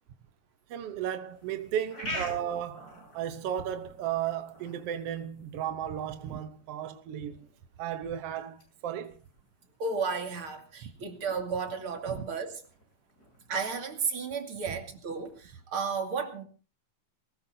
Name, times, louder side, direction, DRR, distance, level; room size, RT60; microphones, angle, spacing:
voice 1, 0.7-7.5 7.8-9.2 10.8-10.9 12.1-12.2 14.7-14.8, right 10 dB, 70° right, 1.5 m, -35 dB
sound 1, 1.3-15.3, left 1 dB, 25° left, 7.3 m, -48 dB
voice 2, 9.8-12.6 13.5-16.4, right 5 dB, 45° right, 3.0 m, -33 dB
21.5 x 19.0 x 2.7 m
omnidirectional pair, 3.8 m